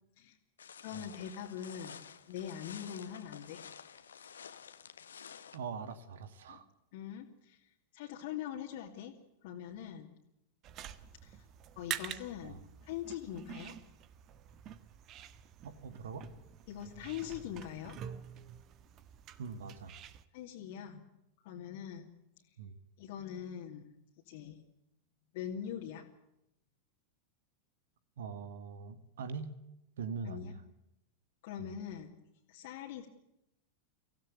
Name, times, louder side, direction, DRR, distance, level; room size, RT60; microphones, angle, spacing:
sound 1, 0.6-5.6, left 7 dB, 70° left, 1.6 m, -51 dB
voice 1, 0.8-3.6 6.5-6.6 6.9-9.1 9.4-10.1 11.2-11.4 11.8-13.7 16.7-18.0 20.3-21.0 21.4-22.1 23.0-23.9 24.3-24.6 25.3-26.1 30.2-30.5 31.4-32.2 32.5-33.1, left 9 dB, 50° left, -1 dB, 2.7 m, -43 dB
voice 2, 5.5-6.7 12.4-12.6 15.6-16.3 19.4-20.0 22.6-22.8 28.2-29.6 30.0-30.6 31.6-31.7, right 5 dB, 60° right, 13 dB, 1.9 m, -42 dB
sound 2, 10.6-20.2, right 10 dB, 35° right, 1.4 m, -47 dB
25.0 x 16.5 x 8.2 m, 0.87 s
figure-of-eight pair, 90°, 0 cm